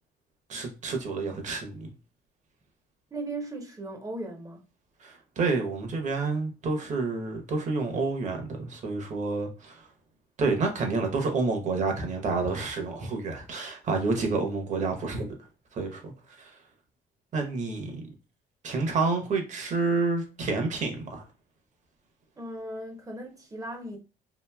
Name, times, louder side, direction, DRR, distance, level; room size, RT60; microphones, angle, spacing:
voice 1, 0.5-1.9 5.0-9.9 10.4-15.3 15.7-16.1 16.4-16.5 17.3-18.0 18.6-21.2, right 3 dB, 45° right, 0.9 m, -29 dB
voice 2, 3.1-4.6 22.4-24.0, right 2 dB, 20° right, 0.7 m, -37 dB
2.9 x 2.6 x 2.3 m
cardioid pair, 110°, 17 cm